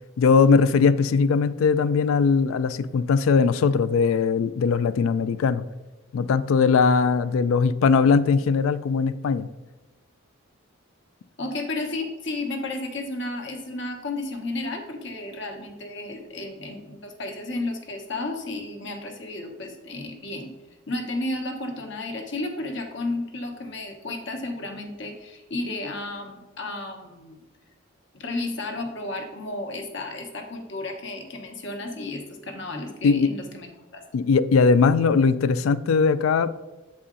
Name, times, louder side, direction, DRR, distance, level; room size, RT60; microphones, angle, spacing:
voice 1, 0.2-5.7 6.1-9.5 33.0-33.3 34.1-36.5, left 5 dB, 75° left, 15 dB, 0.3 m, -20 dB
voice 2, 11.4-20.5 20.9-27.4 28.1-34.0, left 2 dB, 60° left, 3 dB, 1.0 m, -33 dB
7.5 x 4.2 x 3.7 m, 1.1 s
head